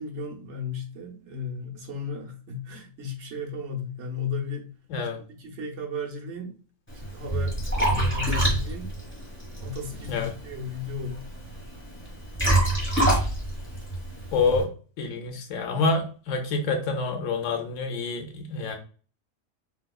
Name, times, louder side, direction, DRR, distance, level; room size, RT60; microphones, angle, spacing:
voice 1, 0.0-4.7 5.0-6.6 6.9-8.9 9.6-11.2, left 4 dB, 65° right, -1 dB, 1.0 m, -34 dB
Liquid, 6.9-14.6, right 1 dB, 10° left, 1.1 m, -27 dB
voice 2, 14.3-14.7 15.0-18.7, left 4 dB, 85° left, 4 dB, 1.0 m, -27 dB
3.6 x 2.8 x 2.2 m, 0.38 s
omnidirectional pair, 1.3 m